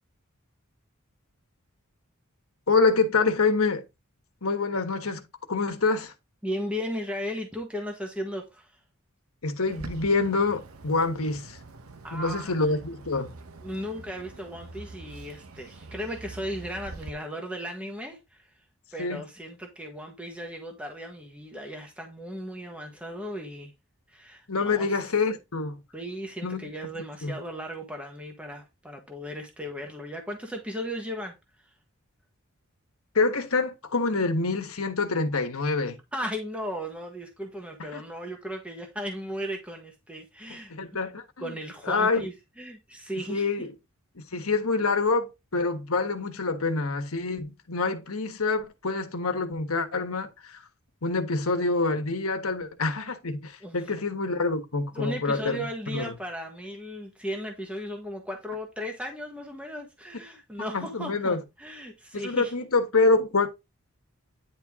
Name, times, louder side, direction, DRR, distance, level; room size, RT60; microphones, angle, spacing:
voice 1, 2.7-3.8 4.4-5.2 5.5-6.1 9.4-11.6 12.1-13.3 19.0-19.2 24.5-25.8 26.4-26.7 27.2-27.4 33.1-36.0 37.9-38.0 40.5-41.6 41.9-42.2 43.3-43.7 44.1-50.6 51.0-56.1 60.7-61.4 62.1-63.5, left 3 dB, 80° left, 1.4 m, -26 dB
voice 2, 6.4-8.8 12.0-12.7 13.6-18.5 18.9-23.7 24.1-25.1 25.9-31.3 36.1-40.7 41.4-43.5 53.6-53.9 54.9-62.5, equal, 5° right, 1.3 m, -36 dB
Bird, 9.7-17.1, right 3 dB, 80° right, 1.0 m, -45 dB
10.0 x 4.5 x 3.6 m
head